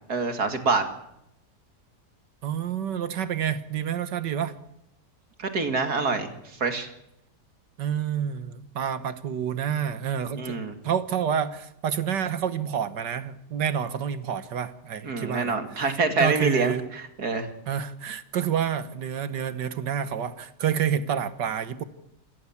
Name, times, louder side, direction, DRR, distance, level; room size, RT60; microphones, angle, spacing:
voice 1, 0.1-0.9 5.4-6.3 6.6-6.9 10.3-10.7 15.0-17.5, right 4 dB, 65° right, 7 dB, 2.8 m, -26 dB
voice 2, 2.4-4.5 7.8-10.6 10.8-15.6 16.2-16.8 17.7-21.8, right 8 dB, 85° right, 12 dB, 1.9 m, -28 dB
26.5 x 18.0 x 7.3 m, 0.82 s
omnidirectional pair, 1.8 m